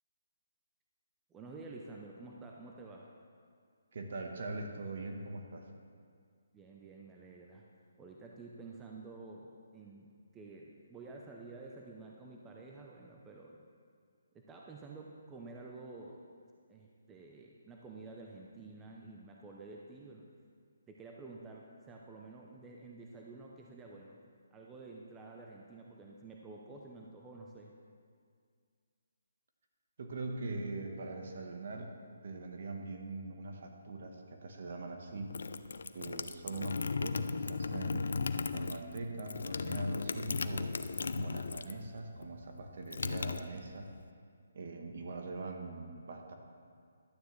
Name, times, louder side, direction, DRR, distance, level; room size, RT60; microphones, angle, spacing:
voice 1, 1.3-3.1 6.5-7.7 8.0-10.1 10.3-13.7 14.3-16.2 16.7-20.3 20.9-24.2 24.5-27.7, right 3 dB, 10° right, -1 dB, 0.5 m, -50 dB
voice 2, 3.9-5.6 30.0-31.9 32.2-35.3 35.9-38.1 38.5-40.7 41.1-43.9 44.5-46.3, right 3 dB, 55° right, 3 dB, 1.1 m, -42 dB
sound 1, 35.1-41.9 42.2-44.0, left 4 dB, 75° left, 0.4 m, -36 dB
12.0 x 9.0 x 3.2 m, 2.1 s
hypercardioid pair, 160°, 0 cm